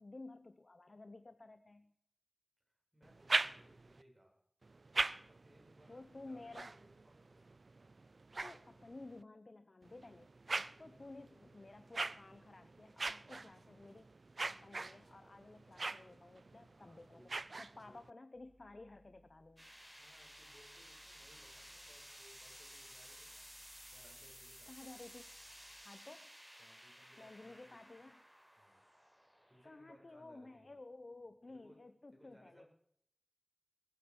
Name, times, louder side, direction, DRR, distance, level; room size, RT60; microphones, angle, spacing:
voice 1, 0.0-1.9 5.9-6.7 8.4-14.1 14.5-17.2 17.6-19.7 24.7-25.3 25.8-26.3 27.2-28.2 29.6-32.6, left 2 dB, 65° left, 11 dB, 0.8 m, -54 dB
voice 2, 2.7-4.4 5.3-7.7 10.7-11.7 12.2-12.4 16.6-17.3 17.8-18.0 19.9-23.5 23.9-24.7 26.6-27.8 28.6-28.8 29.5-30.7 31.5-31.8 32.1-32.7, equal, 20° right, -1 dB, 7.3 m, -66 dB
sound 1, 3.0-4.0 4.6-9.2 9.8-18.1, right 3 dB, 80° right, 0.5 m, -43 dB
sound 2, 18.3-25.8, right 1 dB, 45° right, 4.3 m, -70 dB
sound 3, 19.6-30.7, equal, ahead, 6.2 m, -56 dB
19.5 x 9.3 x 6.4 m, 0.70 s
wide cardioid pair, 45°, 0 cm